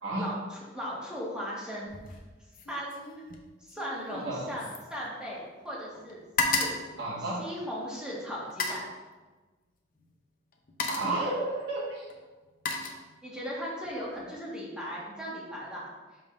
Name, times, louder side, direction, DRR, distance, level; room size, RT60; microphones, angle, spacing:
voice 1, 0.2-2.2 2.7-2.9 3.6-6.2 6.5-6.7 7.4-8.9 13.2-15.9, equal, 5° right, -6 dB, 1.5 m, -37 dB
sound 1, 1.9-2.3 2.5-5.7 5.9-7.8 8.4-8.9 10.0-10.1 10.5-11.2 12.1-13.5 13.9-14.2, left 3 dB, 45° left, 0.7 m, -34 dB
voice 2, 4.1-4.5 7.0-7.4 10.9-12.0, right 2 dB, 80° right, -11 dB, 1.7 m, -32 dB
11.0 x 3.7 x 2.6 m, 1.2 s
head